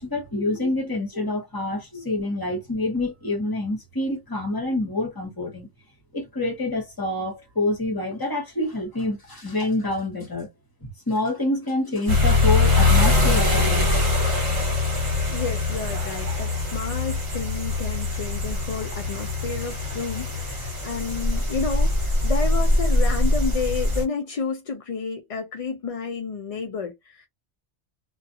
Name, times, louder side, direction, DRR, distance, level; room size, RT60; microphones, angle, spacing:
voice 1, 0.0-5.7 6.1-10.5 10.8-13.9, left 2 dB, 20° left, 1.0 m, -27 dB
sound 1, 12.1-24.0, left 2 dB, 40° right, 1.3 m, -22 dB
voice 2, 15.3-27.3, left 5 dB, 60° left, 0.3 m, -31 dB
2.4 x 2.3 x 2.6 m
omnidirectional pair, 1.2 m